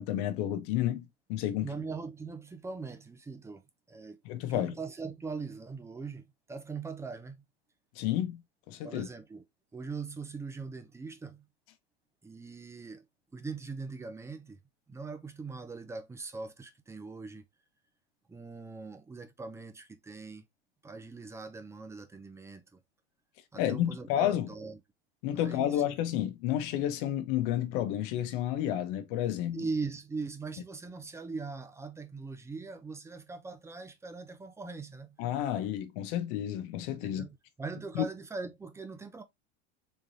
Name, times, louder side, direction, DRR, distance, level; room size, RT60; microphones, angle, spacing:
voice 1, 0.0-1.7 4.2-4.7 8.0-8.4 8.7-9.1 23.6-24.5 25.2-29.6 35.2-37.3 37.9-38.1, left 11 dB, 60° left, 0.9 m, -31 dB
voice 2, 1.6-3.6 3.9-4.2 4.5-7.4 8.8-9.4 9.7-11.4 12.2-13.0 13.3-14.6 14.9-17.4 18.3-20.4 20.8-22.8 23.5-24.8 25.3-25.8 29.5-35.2 37.0-39.2, right 4 dB, 10° right, 0.5 m, -41 dB
3.7 x 3.2 x 2.7 m
supercardioid pair, 125°, 33 cm